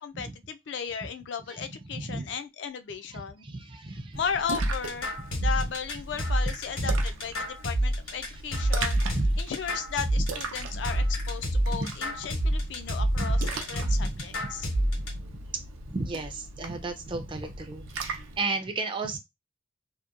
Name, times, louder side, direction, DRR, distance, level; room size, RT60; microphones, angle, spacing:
voice 1, 0.0-3.4 4.2-5.1 5.4-9.0 9.4-13.4 13.7-14.7, left 7 dB, 60° left, 0.3 m, -35 dB
voice 2, 1.9-2.3 3.1-4.2 5.2-5.7 6.5-6.6 6.8-7.0 8.2-8.4 9.0-9.4 11.7-12.0 12.9-14.3 15.1-15.2 15.9-19.2, right 3 dB, 25° right, 0.4 m, -35 dB
Splash splatter, 4.1-18.4, right 3 dB, 85° right, 0.5 m, -39 dB
sound 1, 4.6-15.1, right 1 dB, 80° left, 1.3 m, -27 dB
2.9 x 2.1 x 2.3 m
head